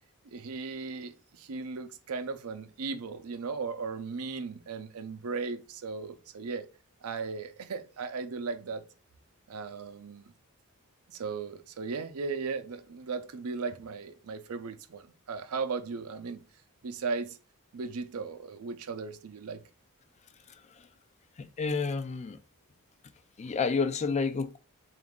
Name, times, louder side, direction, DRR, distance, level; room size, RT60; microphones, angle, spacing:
voice 1, 0.2-6.7 7.0-8.8 9.5-10.3 11.1-16.4 16.8-17.4 17.7-19.6, right 4 dB, 75° right, 0.5 m, -37 dB
voice 2, 20.5-20.9 21.4-22.4 23.4-24.6, left 4 dB, 30° left, 0.4 m, -30 dB
4.0 x 2.5 x 3.6 m
head